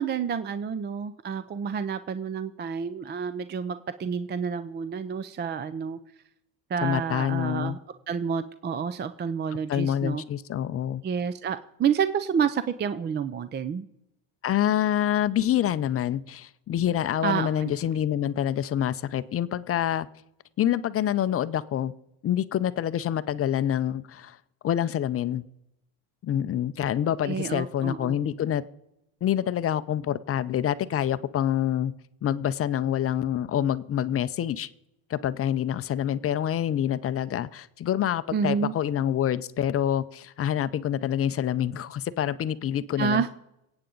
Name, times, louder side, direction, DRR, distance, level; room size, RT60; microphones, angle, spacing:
voice 1, 0.0-6.0 6.7-7.8 8.1-10.2 11.0-13.9 17.2-17.7 27.2-28.2 38.3-38.8 43.0-43.3, right 7 dB, 20° right, 12 dB, 0.4 m, -29 dB
voice 2, 6.8-7.8 9.7-11.0 14.4-20.1 20.6-21.9 22.2-24.4 24.6-25.4 26.2-28.6 29.2-31.9 32.2-34.7 35.1-43.3, left 10 dB, 30° left, 14 dB, 0.5 m, -26 dB
23.5 x 8.8 x 3.9 m, 0.86 s
supercardioid pair, 110°, 50 cm